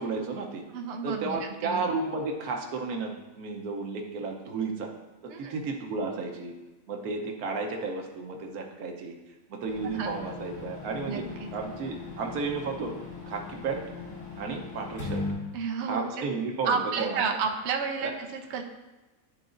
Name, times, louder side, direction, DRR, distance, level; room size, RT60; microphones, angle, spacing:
voice 1, 0.0-0.6 1.0-4.9 5.2-6.5 6.9-9.2 9.5-11.2 11.5-12.9 13.3-13.8 14.4-15.2 15.9-17.2 18.0-18.1, right 4 dB, 90° right, 3 dB, 1.3 m, -33 dB
voice 2, 0.7-1.4 1.6-1.9 5.3-5.6 9.8-10.1 11.1-11.5 15.5-16.1 16.6-18.6, right 5 dB, 60° right, 4 dB, 0.8 m, -31 dB
sound 1, 9.7-15.3, left 3 dB, 85° left, 2.2 m, -39 dB
10.5 x 3.9 x 2.5 m, 1.1 s
omnidirectional pair, 1.5 m